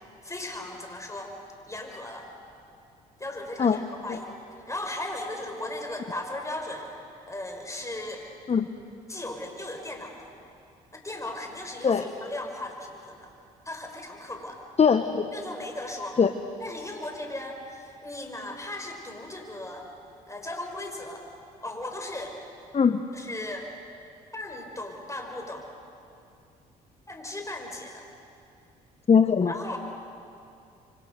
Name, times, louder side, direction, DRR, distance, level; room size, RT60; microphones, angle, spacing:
voice 1, 0.2-1.3 1.7-2.3 3.2-4.4 4.7-6.9 7.3-8.3 9.1-10.3 10.9-13.3 13.7-14.6 15.3-16.2 16.6-19.9 20.3-21.2 21.6-22.4 23.1-23.7 24.3-25.7 27.1-28.1 29.5-29.8, left 1 dB, 15° left, 2 dB, 5.8 m, -37 dB
voice 2, 14.8-15.3 16.2-16.3 22.7-23.0 29.1-29.5, left 6 dB, 35° left, 9 dB, 1.1 m, -21 dB
27.5 x 24.5 x 6.9 m, 2.6 s
hypercardioid pair, 55°, 20 cm